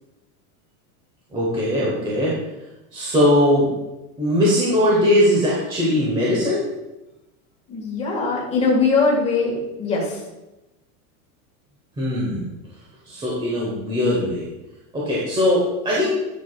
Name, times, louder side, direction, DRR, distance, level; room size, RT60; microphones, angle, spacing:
voice 1, 1.3-2.3 2.9-3.7 4.2-6.6 12.0-12.5 13.1-14.4 14.9-16.1, left 1 dB, 10° right, -6 dB, 1.1 m, -20 dB
voice 2, 7.7-10.2, left 4 dB, 15° left, -3 dB, 1.6 m, -21 dB
9.3 x 6.1 x 2.4 m, 0.99 s
supercardioid pair, 165°, 43 cm